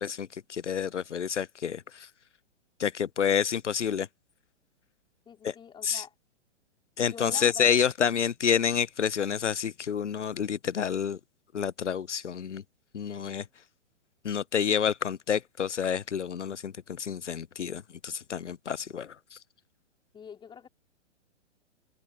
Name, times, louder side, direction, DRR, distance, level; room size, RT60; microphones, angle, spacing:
voice 1, 0.0-2.1 2.8-4.1 5.4-5.5 5.8-6.0 7.0-11.2 11.5-12.6 12.9-13.4 14.2-19.4, left 8 dB, 85° left, 0.5 m, -29 dB
voice 2, 5.2-6.1 7.0-7.7 20.1-20.7, left 7 dB, 15° left, 3.4 m, -44 dB
open air
figure-of-eight pair, 115°, 35 cm